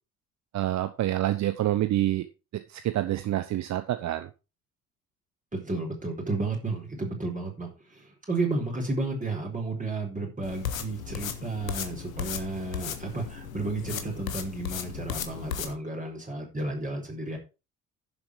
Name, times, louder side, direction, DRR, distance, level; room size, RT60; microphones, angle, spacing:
voice 1, 0.5-2.3 2.5-4.3, right 13 dB, 40° right, 11 dB, 1.0 m, -27 dB
voice 2, 5.5-17.4, right 3 dB, 20° right, 0 dB, 4.3 m, -32 dB
sound 1, 10.4-15.7, left 8 dB, 75° left, 1.4 m, -36 dB
11.0 x 7.4 x 4.7 m, 0.29 s
figure-of-eight pair, 55°, 41 cm